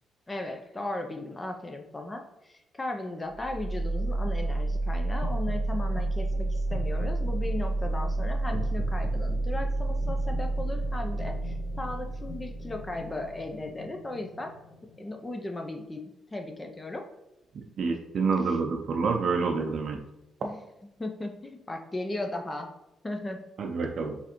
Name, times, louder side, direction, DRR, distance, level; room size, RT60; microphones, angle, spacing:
voice 1, 0.3-14.5 15.0-16.0 16.3-17.0 20.4-20.6 21.0-22.7 23.0-23.5, left 2 dB, 20° left, 4 dB, 0.5 m, -36 dB
sound 1, 3.3-15.2, right 2 dB, 50° left, 1.3 m, -30 dB
voice 2, 17.8-20.0 23.6-24.2, right 4 dB, 55° right, 1 dB, 0.5 m, -27 dB
4.7 x 3.3 x 2.9 m, 0.87 s
cardioid pair, 90°, 0 cm